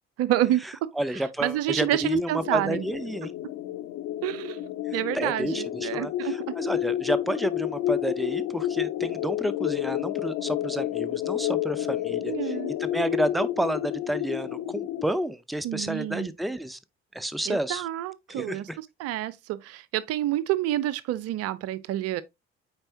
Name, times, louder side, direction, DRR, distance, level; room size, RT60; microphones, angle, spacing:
voice 1, 0.2-0.9 1.4-2.8 4.2-6.6 12.2-12.8 15.6-16.3 17.5-22.2, right 13 dB, 50° right, 0.5 m, -29 dB
voice 2, 1.0-3.3 4.9-12.5 12.8-16.8 17.1-17.8 18.3-18.8, right 1 dB, ahead, 0.6 m, -30 dB
sound 1, 2.4-15.1, left 13 dB, 55° left, 0.8 m, -30 dB
8.7 x 4.4 x 2.8 m
figure-of-eight pair, 50°, 31 cm